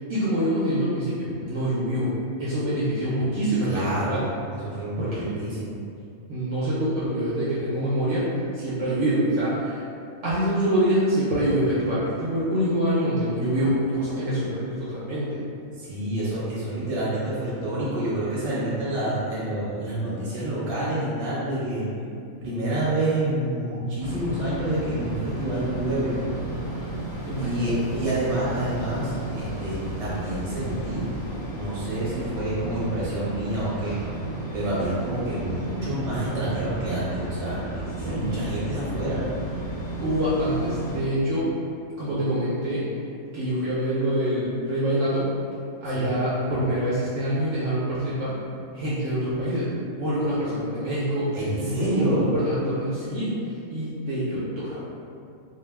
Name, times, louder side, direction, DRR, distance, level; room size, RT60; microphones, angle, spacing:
voice 1, 0.1-2.1 2.4-4.3 5.0-5.4 6.3-9.9 10.2-15.4 16.3-16.4 27.1-28.1 38.0-38.5 40.0-41.6 42.0-42.9 43.3-45.3 45.8-48.4 48.7-54.8, right 1 dB, 65° right, -9 dB, 0.8 m, -25 dB
voice 2, 3.6-4.3 4.6-5.8 15.8-21.9 22.4-26.1 27.4-31.1 31.5-34.0 34.5-39.3 45.9-46.1 51.3-52.3, right 1 dB, 35° right, -9 dB, 0.8 m, -28 dB
sound 1, 24.0-41.0, right 2 dB, 35° left, 0.5 m, -33 dB
2.3 x 2.1 x 3.1 m, 2.5 s
omnidirectional pair, 1.4 m